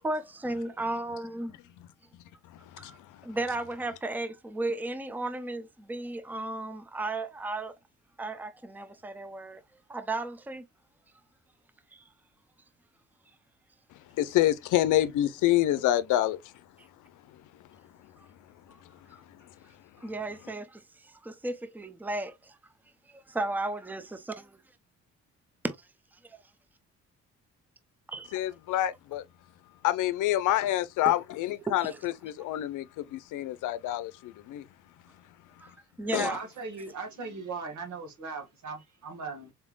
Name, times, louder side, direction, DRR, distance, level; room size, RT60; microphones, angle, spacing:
voice 1, 0.0-1.6 2.8-7.7 8.2-9.6 9.9-10.6 11.9-12.0 18.7-18.8 20.0-22.6 23.1-24.6 25.6-25.8 26.2-26.4 28.1-28.3 31.1-31.2 31.7-32.0 35.6-35.7 36.0-36.4, right 2 dB, 5° right, 0.6 m, -34 dB
voice 2, 14.2-16.4 28.3-29.2 29.8-34.6 36.1-36.3, left 13 dB, 85° left, 0.6 m, -27 dB
voice 3, 36.2-39.5, right 4 dB, 70° right, 1.9 m, -38 dB
4.2 x 3.6 x 2.4 m
cardioid pair, 90°, 30 cm